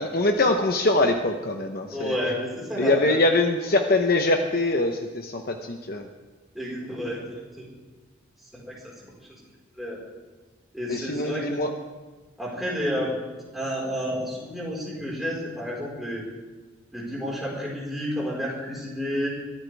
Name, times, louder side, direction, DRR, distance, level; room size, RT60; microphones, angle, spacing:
voice 1, 0.0-2.2 2.8-6.0 10.9-11.7, left 2 dB, 50° left, 4 dB, 1.0 m, -23 dB
voice 2, 1.9-3.2 6.5-7.7 8.5-8.7 9.7-10.0 10.7-11.6 12.4-13.1 13.5-16.2 16.9-19.3, equal, ahead, -5 dB, 4.7 m, -30 dB
22.5 x 14.0 x 3.5 m, 1.3 s
head